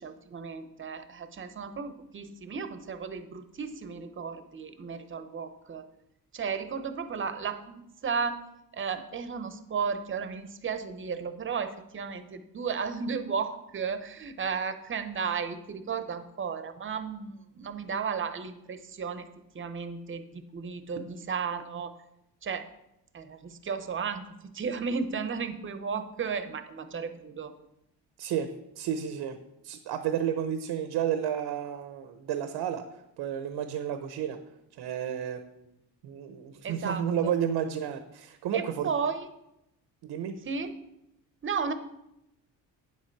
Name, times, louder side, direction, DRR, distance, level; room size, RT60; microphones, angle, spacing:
voice 1, 0.0-5.8 6.3-8.4 8.7-19.2 19.5-21.9 22.4-22.6 23.1-24.2 24.5-27.5 36.6-37.0 38.5-39.3 40.5-40.7 41.4-41.7, right 5 dB, 30° right, 10 dB, 0.8 m, -34 dB
voice 2, 28.7-29.4 29.6-32.8 33.2-34.4 34.7-35.7 36.0-38.9 40.0-40.3, right 9 dB, 90° right, 8 dB, 0.9 m, -31 dB
9.4 x 7.5 x 4.6 m, 0.84 s
cardioid pair, 125°, 39 cm